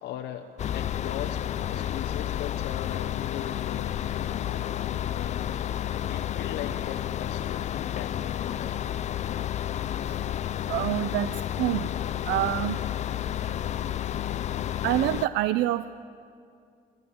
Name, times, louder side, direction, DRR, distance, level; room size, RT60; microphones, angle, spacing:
voice 1, 0.0-1.4 1.7-5.6 6.1-8.9, left 11 dB, 85° left, 5 dB, 0.9 m, -39 dB
sound 1, 0.6-15.3, left 11 dB, 45° left, 0.5 m, -31 dB
voice 2, 10.7-11.3 11.6-11.9 12.3-12.8 14.8-15.9, right 14 dB, 85° right, 13 dB, 0.5 m, -26 dB
28.5 x 12.0 x 8.6 m, 2.4 s
cardioid pair, 110°, 17 cm